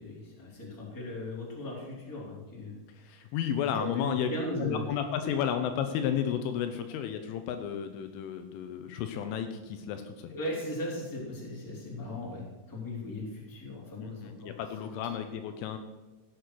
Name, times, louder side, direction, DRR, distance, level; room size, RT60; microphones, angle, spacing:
voice 1, 0.0-3.3 3.6-4.9 10.3-12.4 12.7-14.5 15.0-15.1, left 1 dB, 5° left, -4 dB, 2.5 m, -38 dB
voice 2, 3.0-4.3 4.6-10.3 14.0-15.8, left 9 dB, 80° left, 7 dB, 3.2 m, -32 dB
15.0 x 8.0 x 6.2 m, 1.1 s
omnidirectional pair, 5.8 m